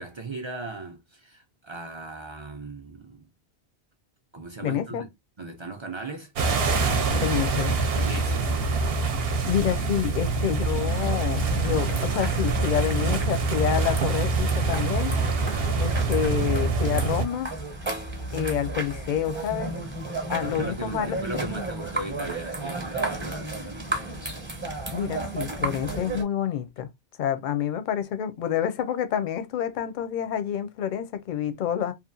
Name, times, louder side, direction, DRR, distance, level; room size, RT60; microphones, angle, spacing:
voice 1, 0.0-3.2 4.3-5.1 5.4-7.2 7.9-8.7 15.4-15.8 20.3-23.5, right 3 dB, 45° right, 0.3 m, -38 dB
voice 2, 4.6-5.1 7.1-7.7 9.4-15.2 15.8-17.5 18.3-19.8 20.3-21.1 21.5-21.6 24.9-26.9 27.2-31.9, left 9 dB, 60° left, 0.5 m, -28 dB
sound 1, 6.4-17.2, right 3 dB, 70° right, 0.7 m, -25 dB
sound 2, 11.3-26.2, right 2 dB, 10° right, 0.7 m, -33 dB
2.8 x 2.3 x 2.5 m
omnidirectional pair, 1.1 m